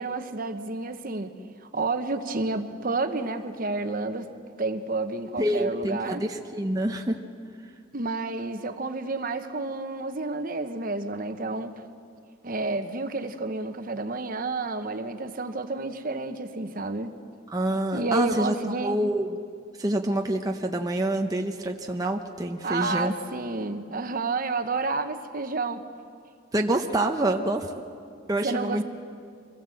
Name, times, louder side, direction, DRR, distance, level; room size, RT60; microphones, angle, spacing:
voice 1, 0.0-1.3 1.7-4.3 4.6-6.2 7.9-11.7 12.4-17.1 17.9-19.0 22.6-25.8 28.4-28.8, right 3 dB, 45° right, 8 dB, 1.0 m, -30 dB
voice 2, 5.4-7.2 17.5-19.4 19.8-23.1 26.5-27.7 28.3-28.8, right 1 dB, 20° right, 3 dB, 0.7 m, -27 dB
25.0 x 18.0 x 7.7 m, 2.4 s
head